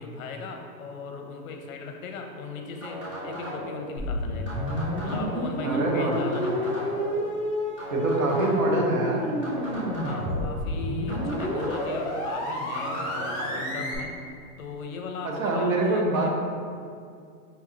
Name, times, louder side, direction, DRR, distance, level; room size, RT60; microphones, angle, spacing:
voice 1, 0.0-4.6 5.0-6.8 10.0-14.1 14.6-16.3, left 3 dB, 65° left, 3 dB, 0.6 m, -38 dB
sound 1, 2.8-3.9 4.5-5.5 6.1-7.2 7.8-8.8 9.4-10.5 11.1-12.1 12.7-13.6, equal, 20° right, 0.5 m, -36 dB
sound 2, 4.0-14.0, left 1 dB, 25° left, 0.8 m, -30 dB
voice 2, 5.6-6.2 7.9-9.2 13.9-14.0 15.2-16.3, right 2 dB, 65° right, -1 dB, 0.9 m, -25 dB
5.5 x 2.9 x 2.4 m, 2.3 s
hypercardioid pair, 180°, 45 cm